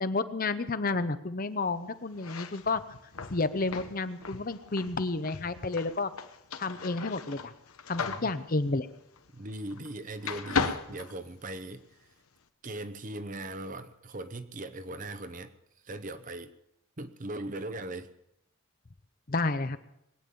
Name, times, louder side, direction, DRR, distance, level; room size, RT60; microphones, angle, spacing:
voice 1, 0.0-2.8 3.3-6.1 6.6-7.5 7.9-8.9 19.3-19.8, left 3 dB, 40° left, 12 dB, 0.7 m, -31 dB
sound 1, 2.1-9.9 10.2-11.9, left 5 dB, 85° left, 1.0 m, -37 dB
voice 2, 8.0-8.3 9.3-11.8 12.6-15.5 15.8-16.5 17.0-18.1, right 2 dB, 35° right, 11 dB, 0.8 m, -39 dB
21.0 x 9.2 x 7.0 m, 0.80 s
head